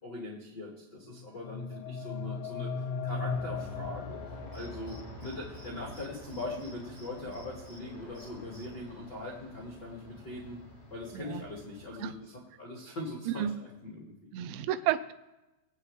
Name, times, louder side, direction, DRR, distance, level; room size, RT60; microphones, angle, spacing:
voice 1, 0.0-2.7 3.0-10.6 10.9-14.1, left 2 dB, 55° left, -4 dB, 1.2 m, -41 dB
sound 1, 1.1-5.1, left 5 dB, 85° left, 3.3 m, -37 dB
Aircraft, 3.3-12.3, left 1 dB, 40° left, 6.6 m, -48 dB
Cricket, 4.5-5.7 5.9-6.0 6.3-7.8 8.1-8.6, right 1 dB, 40° right, 6.0 m, -55 dB
voice 2, 14.3-15.1, right 11 dB, 85° right, 11 dB, 3.3 m, -31 dB
26.0 x 8.7 x 3.3 m, 1.0 s
omnidirectional pair, 6.0 m